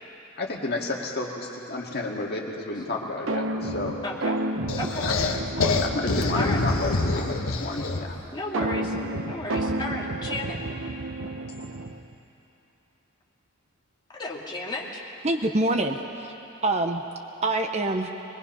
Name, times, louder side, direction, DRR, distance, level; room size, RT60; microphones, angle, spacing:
voice 1, 0.4-4.0 5.0-5.1 5.7-8.2 11.2-11.3, left 2 dB, 50° left, -1 dB, 2.1 m, -31 dB
sound 1, 3.3-7.0 8.5-12.1, right 1 dB, 65° right, 0.8 m, -31 dB
voice 2, 4.0-4.3 4.7-5.0 6.3-6.6 8.3-8.9 9.2-10.6 14.2-14.9, left 2 dB, 20° left, -3 dB, 2.3 m, -33 dB
sound 2, 4.7-8.2, left 3 dB, 85° left, 1.3 m, -26 dB
voice 3, 15.2-16.3 16.6-17.0 17.4-18.1, right 2 dB, 30° right, 5 dB, 0.8 m, -25 dB
22.0 x 21.5 x 5.6 m, 3.0 s
head